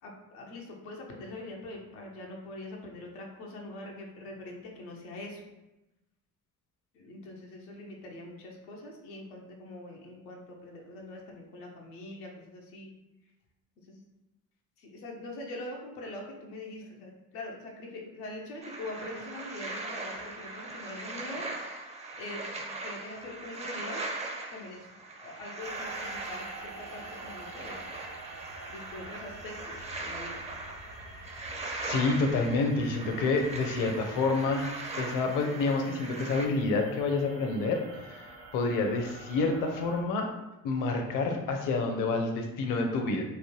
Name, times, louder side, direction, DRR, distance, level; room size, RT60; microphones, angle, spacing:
voice 1, 0.0-5.4 6.9-12.9 13.9-14.1 14.8-21.5 22.2-24.0 24.5-24.9 25.2-27.8 28.7-30.4, left 1 dB, 80° left, -1 dB, 0.8 m, -43 dB
sound 1, 18.6-36.5, right 2 dB, 15° right, 0.5 m, -40 dB
sound 2, 25.6-40.0, right 2 dB, 65° right, 1.0 m, -48 dB
voice 2, 31.8-40.3 40.6-43.2, left 3 dB, 45° left, 3 dB, 0.6 m, -28 dB
3.2 x 2.1 x 3.0 m, 0.97 s
hypercardioid pair, 60°, 45 cm